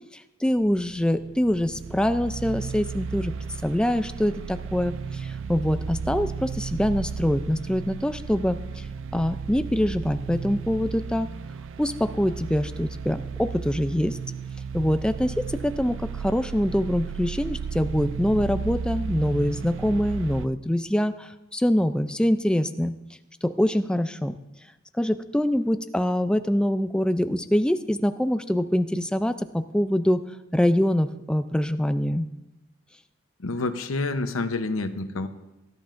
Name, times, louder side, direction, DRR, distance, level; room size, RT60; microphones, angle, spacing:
voice 1, 0.1-3.3 3.6-8.8 9.1-11.3 11.8-14.2 14.7-22.9 23.4-24.4 25.0-30.2 30.5-32.3, equal, 5° left, 10 dB, 0.4 m, -24 dB
sound 1, 0.6-20.5, right 5 dB, 65° right, 0.4 m, -34 dB
voice 2, 33.4-35.3, left 3 dB, 85° left, 9 dB, 0.8 m, -28 dB
19.5 x 11.0 x 2.6 m, 1.0 s
head